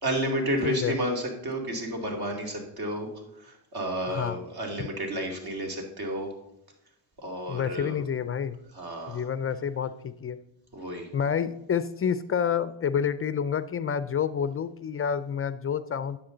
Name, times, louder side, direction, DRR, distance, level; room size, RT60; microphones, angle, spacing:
voice 1, 0.0-3.1 3.3-6.3 7.2-8.0 8.7-9.2 10.7-11.1, right 1 dB, 45° right, 2 dB, 2.5 m, -31 dB
voice 2, 0.6-1.0 4.1-4.4 7.5-8.6 9.1-10.4 11.1-16.2, left 7 dB, 30° left, 14 dB, 0.4 m, -28 dB
9.8 x 7.3 x 3.8 m, 0.84 s
supercardioid pair, 75°, 50 cm